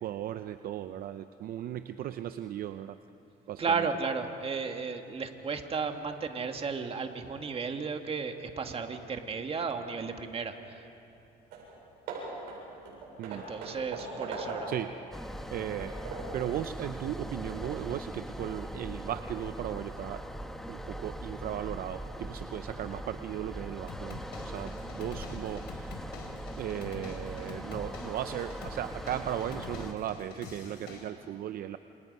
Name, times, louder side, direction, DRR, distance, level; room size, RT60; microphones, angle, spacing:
voice 1, 0.0-3.0 3.5-3.9 13.2-13.7 14.7-14.9 15.5-16.0 16.3-20.2 20.7-26.0 26.6-31.8, right 11 dB, 60° right, 10 dB, 0.7 m, -37 dB
voice 2, 3.6-10.9 13.3-14.7, right 5 dB, 35° right, 5 dB, 1.9 m, -34 dB
Hammer / Wood, 11.1-11.2 11.5-11.7 12.1-14.9 15.4-16.4, right 3 dB, 90° right, 7.7 m, -40 dB
sound 1, 15.1-29.9, equal, ahead, 1.1 m, -41 dB
sound 2, 23.9-31.1, left 5 dB, 75° left, 3.8 m, -46 dB
28.0 x 28.0 x 5.5 m, 2.7 s
cardioid pair, 110°, 17 cm